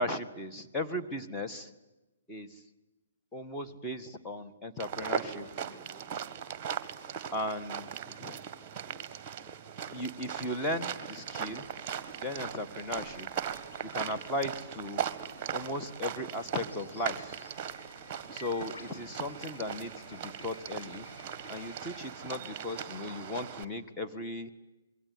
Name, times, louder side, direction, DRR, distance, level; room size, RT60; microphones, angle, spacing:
voice 1, 0.0-1.7 2.3-2.6 3.3-6.1 7.3-7.9 8.2-8.4 9.9-11.6 12.1-13.3 13.9-15.1 15.5-17.4 18.3-21.1 21.5-24.5, left 1 dB, 10° left, 2 dB, 1.8 m, -36 dB
sound 1, 4.8-23.6, right 8 dB, 25° right, 1.8 m, -39 dB
sound 2, 11.2-22.0, left 3 dB, 55° left, 6.1 m, -55 dB
27.0 x 22.5 x 9.5 m, 1.0 s
figure-of-eight pair, 125°, 0 cm